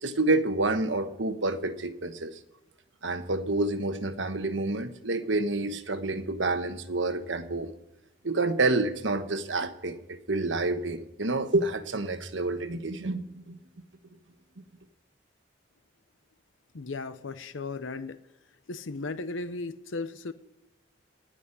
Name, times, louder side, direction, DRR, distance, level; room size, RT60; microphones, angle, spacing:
voice 1, 0.0-2.3 3.0-7.7 8.2-13.6, right 2 dB, 75° right, 8 dB, 1.2 m, -28 dB
voice 2, 16.7-18.2 18.7-20.3, left 3 dB, 85° left, 12 dB, 0.7 m, -36 dB
19.0 x 6.3 x 9.8 m, 1.0 s
head